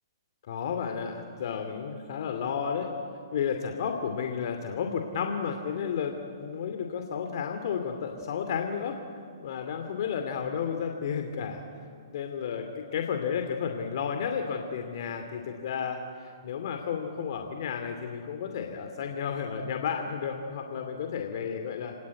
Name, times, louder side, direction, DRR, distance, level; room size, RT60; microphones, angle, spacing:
voice 1, 0.4-2.9 3.3-9.0 9.4-11.6 12.1-21.9, left 7 dB, 55° left, 4 dB, 2.5 m, -32 dB
29.0 x 19.0 x 9.6 m, 2.3 s
hypercardioid pair, 140°, 3 cm